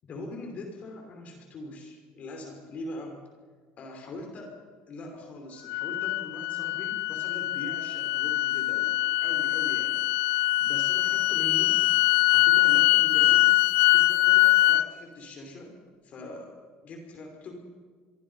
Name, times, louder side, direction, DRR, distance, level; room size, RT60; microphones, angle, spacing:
voice 1, 0.0-3.2 3.8-4.6 4.9-8.9 9.2-11.8 12.3-13.5 13.9-15.7 16.0-16.5 16.8-17.5, left 1 dB, 45° left, 3 dB, 5.5 m, -42 dB
sound 1, 5.7-14.8, left 19 dB, 90° left, 0.7 m, -23 dB
27.5 x 23.5 x 5.7 m, 1.5 s
cardioid pair, 125°, 3 cm